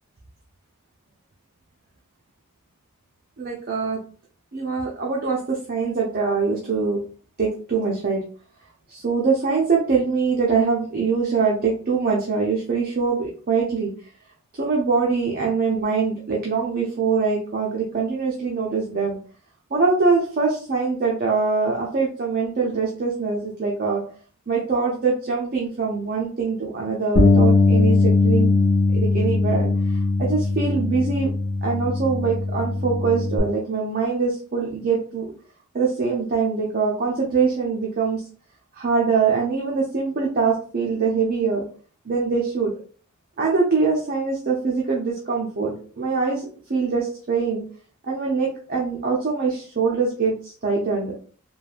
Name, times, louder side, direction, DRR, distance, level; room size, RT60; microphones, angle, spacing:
voice 1, 3.4-4.0 4.5-7.0 7.4-8.2 8.9-13.9 14.5-19.2 19.7-24.0 24.5-31.3 31.6-35.3 35.7-38.2 38.7-41.6 42.0-42.7 43.4-47.6 48.0-51.1, right 4 dB, 40° right, -3 dB, 0.5 m, -23 dB
Bass guitar, 27.1-33.4, left 3 dB, 55° left, 0.7 m, -20 dB
3.1 x 2.3 x 2.4 m, 0.42 s
head